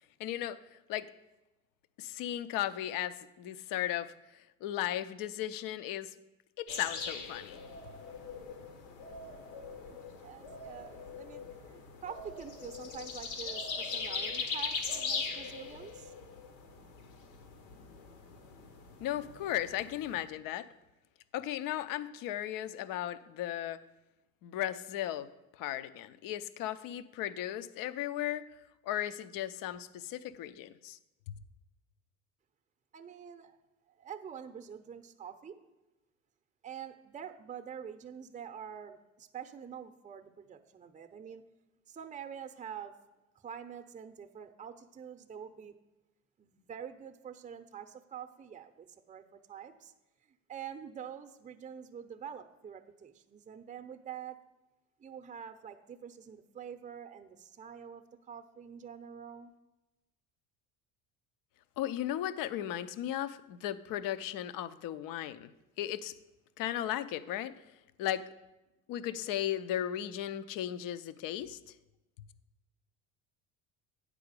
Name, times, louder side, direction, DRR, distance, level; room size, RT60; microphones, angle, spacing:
voice 1, 0.2-1.1 2.0-6.1 6.6-7.6 19.0-20.7 21.3-23.8 24.4-25.3 25.6-28.4 28.8-31.0 61.8-66.1 66.6-67.5 68.0-68.2 68.9-71.7, left 12 dB, 50° left, 15 dB, 0.6 m, -36 dB
sound 1, 6.7-20.2, left 4 dB, 80° left, 1.3 m, -41 dB
voice 2, 9.9-16.1 32.9-33.6 33.9-35.6 36.6-41.4 41.9-42.9 43.4-45.7 46.4-49.9 50.5-54.4 55.0-59.5, right 8 dB, 20° right, 8 dB, 0.7 m, -46 dB
9.3 x 5.0 x 6.7 m, 1.0 s
hypercardioid pair, 70°, 42 cm